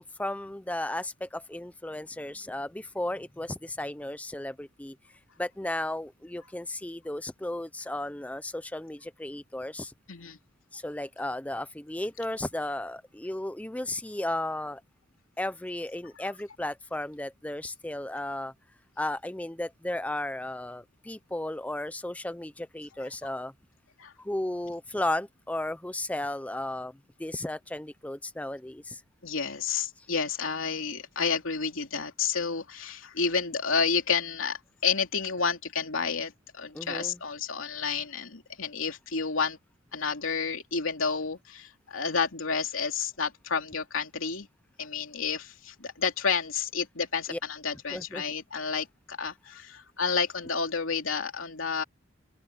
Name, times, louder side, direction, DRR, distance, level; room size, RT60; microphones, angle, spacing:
voice 1, 0.0-5.0 5.4-9.9 10.7-14.8 15.4-18.5 19.0-23.5 24.2-29.0 30.0-30.1 36.7-37.2 47.3-47.4 47.9-48.2, left 1 dB, 5° left, 0.5 m, -34 dB
voice 2, 23.0-23.3 24.0-24.1 29.2-39.6 39.9-44.5 44.8-51.8, left 5 dB, 90° left, 3.0 m, -30 dB
open air
head